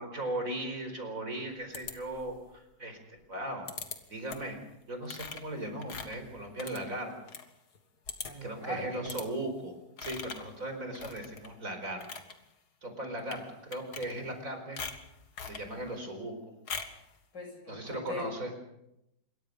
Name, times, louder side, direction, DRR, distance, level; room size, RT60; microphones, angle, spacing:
voice 1, 0.0-3.7 4.1-4.6 4.9-7.1 8.4-9.7 10.0-12.0 12.8-14.8 15.5-16.5 17.7-18.5, right 1 dB, 50° right, 5 dB, 5.1 m, -37 dB
sound 1, 1.7-2.4 3.7-4.0 4.3-4.6 5.1-7.5 7.8-7.9 8.1-8.5 9.1-9.3 10.0-10.5 10.9-11.5 11.9-12.3 13.2-13.4 13.7-14.4 14.8-15.7 16.7-17.0, left 5 dB, 65° left, 2.4 m, -41 dB
voice 2, 8.2-9.1 17.3-18.2, equal, 80° left, 2 dB, 7.4 m, -40 dB
26.5 x 22.5 x 5.4 m, 0.84 s
omnidirectional pair, 1.9 m